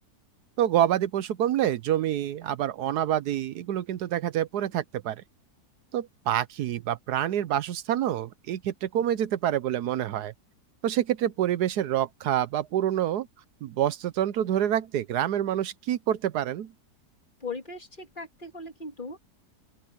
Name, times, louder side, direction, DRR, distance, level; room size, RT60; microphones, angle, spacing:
voice 1, 0.6-5.2 5.9-10.3 10.8-13.3 13.6-16.7, right 11 dB, 75° right, 1.2 m, -27 dB
voice 2, 17.4-19.2, left 3 dB, 30° left, 2.5 m, -38 dB
open air
omnidirectional pair, 1.8 m